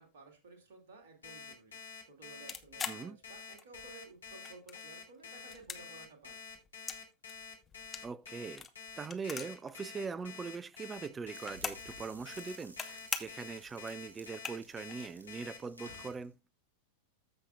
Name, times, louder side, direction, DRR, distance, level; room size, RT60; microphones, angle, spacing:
voice 1, 0.0-6.4, right 3 dB, 55° right, 2.5 m, -55 dB
Alarm, 1.2-16.1, left 6 dB, 70° left, 2.2 m, -48 dB
sound 1, 2.5-3.9 4.3-5.0 5.4-7.0 7.3-9.7 10.0-10.1 10.2-11.9 12.3-12.9 13.1-13.5 13.9-14.0 14.3-14.9, left 6 dB, 20° left, 1.0 m, -41 dB
voice 2, 2.9-3.2 8.0-8.7 9.0-16.3, right 5 dB, 15° right, 0.4 m, -42 dB
sound 2, 11.3-16.2, right 1 dB, 80° right, 2.3 m, -55 dB
14.0 x 5.6 x 2.4 m
figure-of-eight pair, 90°, 0 cm